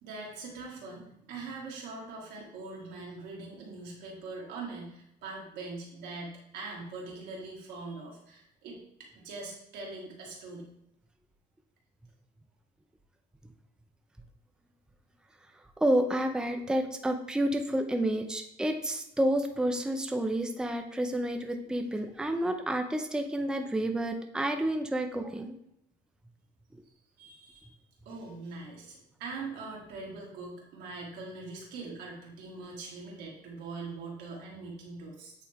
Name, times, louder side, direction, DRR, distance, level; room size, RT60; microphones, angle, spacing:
voice 1, 0.0-8.8 9.2-10.7 27.2-27.7 28.1-35.3, right 3 dB, 85° right, -2 dB, 2.1 m, -42 dB
voice 2, 15.8-25.6, right 1 dB, 5° right, 4 dB, 0.6 m, -29 dB
8.6 x 3.4 x 3.6 m, 0.80 s
cardioid pair, 110°, 17 cm